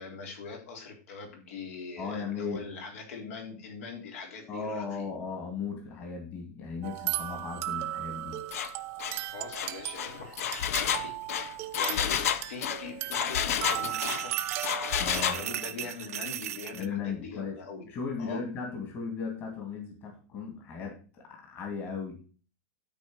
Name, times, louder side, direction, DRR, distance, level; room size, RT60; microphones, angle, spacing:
voice 1, 0.0-5.1 9.3-14.4 15.3-17.8 18.2-18.4, left 5 dB, 65° left, 3 dB, 3.5 m, -42 dB
voice 2, 2.0-2.6 4.5-8.4 15.0-15.4 16.7-17.6 17.8-22.2, left 5 dB, 30° left, 1 dB, 2.7 m, -36 dB
sound 1, 6.8-15.7, right 14 dB, 30° right, 0.7 m, -37 dB
Engine, 8.5-8.7 9.0-9.2 9.5-14.2 14.6-15.4, left 9 dB, 85° left, 0.9 m, -30 dB
sound 2, 13.7-16.9, right 12 dB, 80° right, 0.9 m, -37 dB
12.5 x 4.6 x 6.3 m, 0.38 s
supercardioid pair, 165°, 8 cm